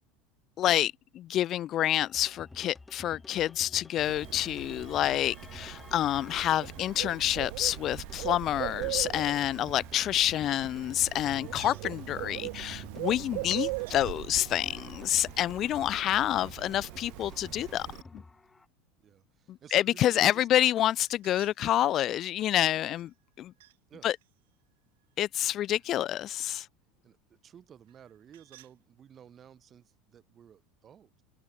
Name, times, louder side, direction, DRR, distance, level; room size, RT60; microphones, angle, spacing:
voice 1, 0.6-17.9 19.5-23.1 23.4-23.5 24.0-24.2 25.2-26.7, left 12 dB, 40° left, 0.6 m, -28 dB
sound 1, 2.0-18.7, left 3 dB, 10° left, 1.4 m, -50 dB
Bird, 4.0-18.0, right 34 dB, 70° right, 0.4 m, -40 dB
voice 2, 11.6-11.9 19.0-20.5 23.9-24.1 25.7-25.8 27.0-31.2, right 9 dB, 30° right, 5.8 m, -54 dB
sound 2, 11.6-12.0 13.8-14.0 14.6-16.5 21.0-22.0 22.9-23.8 24.1-26.0 27.8-28.8, right 17 dB, 85° right, 4.6 m, -58 dB
supercardioid pair, 125°, 0 cm